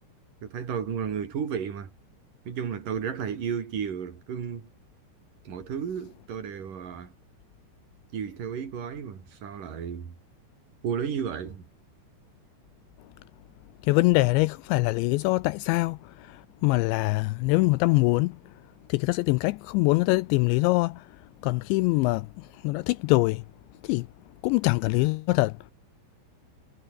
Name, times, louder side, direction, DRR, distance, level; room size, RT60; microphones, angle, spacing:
voice 1, 0.4-1.9 2.5-4.7 5.4-7.1 8.1-10.1 10.8-11.7, right 7 dB, 45° right, 4.6 m, -33 dB
voice 2, 13.9-16.0 16.6-18.3 18.9-20.9 21.4-22.3 22.6-23.4 23.9-24.0 24.4-25.5, left 23 dB, 85° left, 2.5 m, -23 dB
omnidirectional pair, 5.7 m